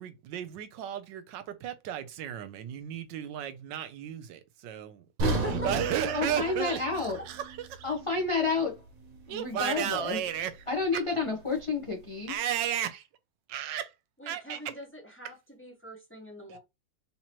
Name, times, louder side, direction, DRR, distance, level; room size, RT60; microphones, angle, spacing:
voice 1, 0.0-5.1 5.5-6.8 7.3-7.8 9.3-10.6 10.9-11.0 12.3-13.0 13.5-13.9 14.3-14.7 16.5-16.6, right 10 dB, 80° right, 1.3 m, -34 dB
voice 2, 5.2-5.7 6.3-6.4 6.7-6.8 14.2-16.6, left 1 dB, 10° left, 1.0 m, -40 dB
sound 1, 5.2-9.3 9.6-9.8 10.4-10.5, right 3 dB, 55° right, 1.2 m, -35 dB
voice 3, 6.0-7.2 7.8-8.8 9.3-10.2 10.7-12.4, left 4 dB, 35° left, 0.4 m, -30 dB
3.7 x 2.9 x 3.0 m
omnidirectional pair, 2.0 m